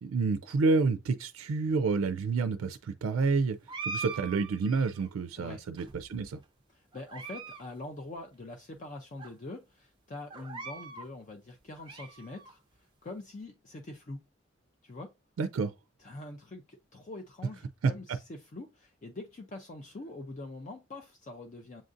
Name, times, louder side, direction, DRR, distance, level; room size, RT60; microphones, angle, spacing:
voice 1, 0.0-6.4 15.4-15.7 17.8-18.2, right 4 dB, 85° right, 0.3 m, -29 dB
sound 1, 3.7-5.1 5.8-6.4 6.9-7.6 7.9-8.0 8.7-8.8 9.2-9.3 10.3-11.1 11.6-12.5, right 4 dB, 25° right, 0.4 m, -42 dB
voice 2, 6.7-14.2 14.8-15.1 16.0-21.8, left 2 dB, 40° left, 0.4 m, -44 dB
7.4 x 2.5 x 2.5 m
head